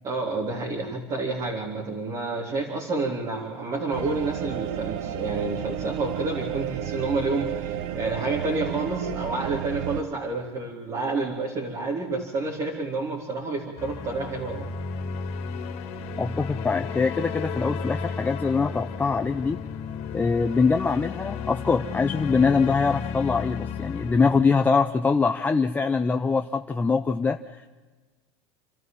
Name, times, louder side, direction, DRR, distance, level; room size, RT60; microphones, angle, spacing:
voice 1, 0.0-14.7, right 3 dB, 30° right, -2 dB, 3.7 m, -29 dB
sound 1, 3.9-10.0, right 11 dB, 65° right, 1.3 m, -32 dB
sound 2, 13.8-24.4, left 5 dB, 45° left, 2.6 m, -33 dB
voice 2, 16.2-19.6 20.1-27.7, left 4 dB, 15° left, 6 dB, 0.7 m, -23 dB
29.0 x 12.5 x 7.5 m, 1.3 s
supercardioid pair, 140°, 13 cm